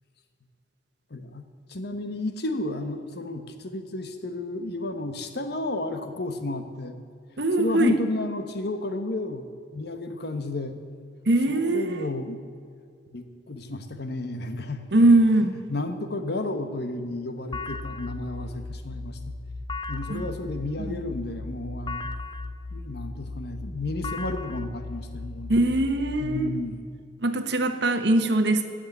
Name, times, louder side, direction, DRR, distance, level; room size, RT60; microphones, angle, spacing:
voice 1, 1.1-7.0 7.6-10.8 11.5-12.4 13.1-14.9 15.7-19.4 19.9-22.1 22.7-25.7 26.2-26.8, left 2 dB, 65° left, 8 dB, 1.2 m, -32 dB
voice 2, 7.4-7.9 11.3-12.1 14.9-15.6 20.1-20.2 20.9-21.0 25.5-26.5 27.2-28.7, right 2 dB, 65° right, 8 dB, 1.1 m, -21 dB
sound 1, 17.5-26.2, left 3 dB, 25° left, 0.5 m, -36 dB
16.0 x 6.6 x 9.5 m, 2.2 s
head